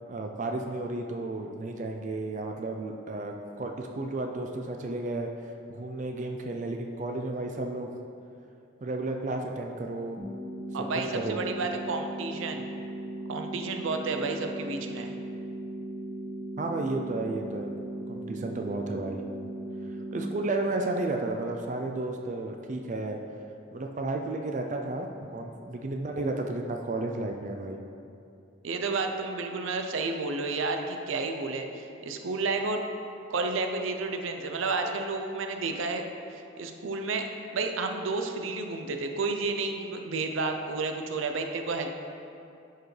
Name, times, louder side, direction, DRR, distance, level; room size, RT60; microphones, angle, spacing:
voice 1, 0.1-5.3 5.7-7.9 8.8-10.2 11.1-11.4 16.6-17.7 18.1-19.2 20.1-23.2 23.7-25.1 25.3-27.8, right 2 dB, 40° right, 3 dB, 0.4 m, -32 dB
sound 1, 10.2-20.2, right 1 dB, ahead, 1.4 m, -38 dB
voice 2, 10.7-12.7 13.3-15.1 28.6-32.8 33.3-36.0 36.6-41.9, right 3 dB, 90° right, 5 dB, 0.6 m, -31 dB
10.0 x 4.7 x 3.2 m, 2.6 s
head